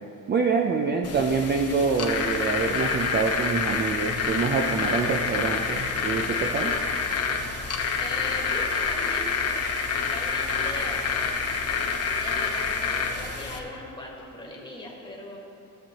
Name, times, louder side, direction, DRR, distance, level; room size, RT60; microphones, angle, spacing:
voice 1, 0.3-6.8, right 4 dB, 30° right, 2 dB, 0.4 m, -26 dB
sound 1, 1.0-13.6, left 5 dB, 45° left, 0.9 m, -27 dB
voice 2, 7.7-11.1 12.2-15.4, left 1 dB, 15° left, -2 dB, 1.5 m, -40 dB
15.5 x 7.1 x 2.9 m, 2.8 s
cardioid pair, 145°, 35 cm